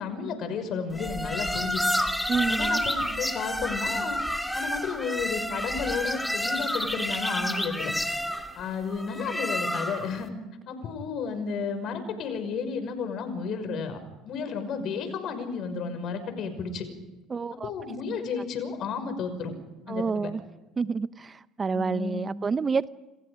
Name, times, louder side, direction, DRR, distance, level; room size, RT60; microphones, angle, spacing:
voice 1, 0.0-1.9 2.5-4.2 4.5-7.9 8.6-10.3 10.7-14.0 14.2-16.9 17.6-19.5 19.9-20.3 21.7-22.3, left 5 dB, 55° left, 8 dB, 5.8 m, -32 dB
sound 1, 0.9-10.2, left 1 dB, 5° left, 2.9 m, -29 dB
voice 2, 2.3-2.8 17.3-17.7 19.9-20.4 20.8-22.9, right 5 dB, 30° right, 15 dB, 0.8 m, -28 dB
29.0 x 27.5 x 5.1 m, 1.1 s
hypercardioid pair, 70°, 0 cm